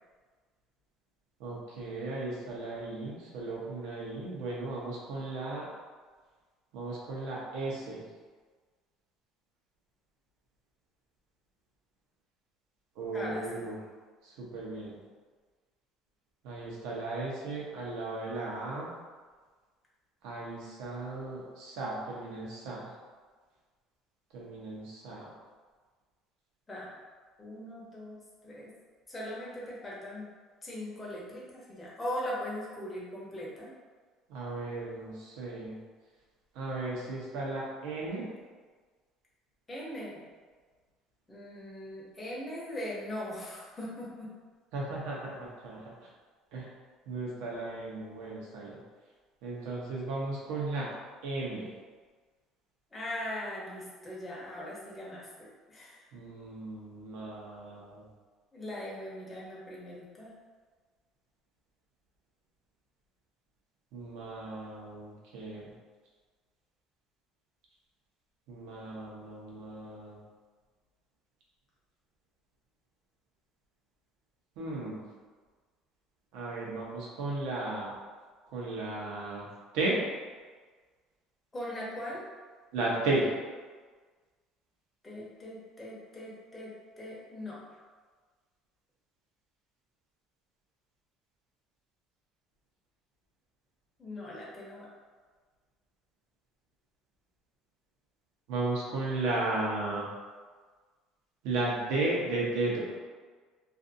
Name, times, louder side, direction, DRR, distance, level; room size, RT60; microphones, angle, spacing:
voice 1, 1.4-5.7 6.7-8.0 13.0-13.8 14.2-15.0 16.4-18.9 20.2-22.9 24.3-25.3 34.3-35.8 36.5-38.3 44.7-45.8 46.5-46.7 47.1-48.8 49.4-50.9 51.2-51.7 56.1-58.1 63.9-65.7 68.5-70.2 74.6-75.0 76.3-77.9 78.5-80.0 82.7-83.3 98.5-100.1 101.4-102.8, right 2 dB, 85° right, -4 dB, 0.7 m, -35 dB
voice 2, 13.1-13.6 26.7-26.9 27.4-28.2 28.4-28.7 29.1-30.3 30.6-33.7 39.7-40.2 41.3-44.3 52.9-56.0 58.5-60.3 81.5-82.2 85.0-87.6 94.0-94.9, left 1 dB, 15° left, -6 dB, 0.7 m, -40 dB
2.5 x 2.5 x 2.6 m, 1.5 s
cardioid pair, 145°, 0 cm